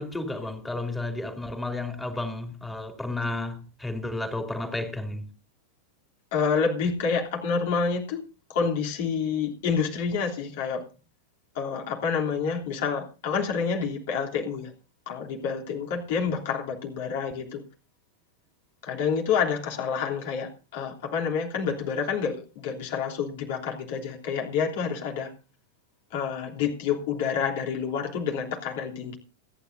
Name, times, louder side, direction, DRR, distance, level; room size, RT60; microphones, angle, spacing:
voice 1, 0.0-5.3, left 2 dB, 10° left, 2.9 m, -32 dB
voice 2, 6.3-8.2 8.5-10.8 11.5-14.7 15.1-17.6 18.8-25.3 26.1-29.2, left 6 dB, 50° left, 3.1 m, -28 dB
29.5 x 10.0 x 2.6 m
figure-of-eight pair, 90°, 0 cm